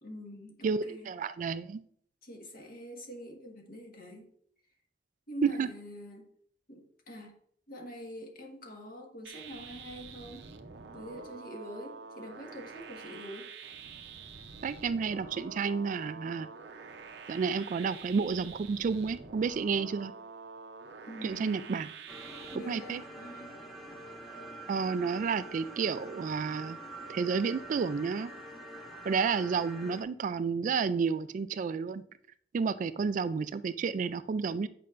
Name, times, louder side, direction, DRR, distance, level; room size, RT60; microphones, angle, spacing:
voice 1, 0.0-1.1 2.2-4.3 5.3-6.3 6.7-7.3 7.7-10.5 10.9-13.5 21.1-21.8 22.5-23.5, equal, 55° left, 2 dB, 1.5 m, -45 dB
voice 2, 0.6-1.8 5.4-5.7 14.6-16.5 17.3-20.1 21.2-21.9 22.7-23.0 24.7-26.8 27.1-28.3 29.0-32.0 32.5-34.7, right 5 dB, 45° right, 14 dB, 0.3 m, -31 dB
sound 1, 9.2-22.6, right 5 dB, 70° right, 0.7 m, -47 dB
sound 2, 22.1-30.0, right 1 dB, ahead, 1.1 m, -46 dB
8.4 x 5.6 x 2.5 m, 0.62 s
head